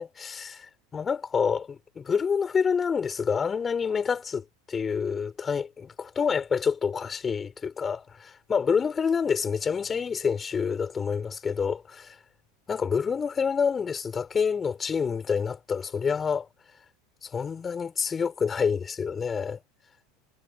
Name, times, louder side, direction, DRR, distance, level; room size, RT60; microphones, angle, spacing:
voice 1, 0.0-12.2 12.7-16.5 17.2-19.6, left 6 dB, 25° left, 4.9 m, -28 dB
figure-of-eight pair, 80°, 0 cm